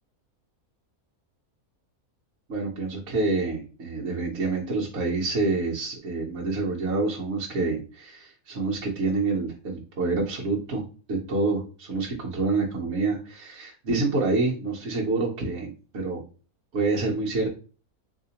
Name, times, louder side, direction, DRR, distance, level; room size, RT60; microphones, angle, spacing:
voice 1, 2.5-10.8 11.1-15.7 15.9-16.2 16.7-17.5, right 3 dB, 60° right, -3 dB, 0.9 m, -27 dB
3.3 x 2.8 x 2.8 m, 0.36 s
omnidirectional pair, 1.5 m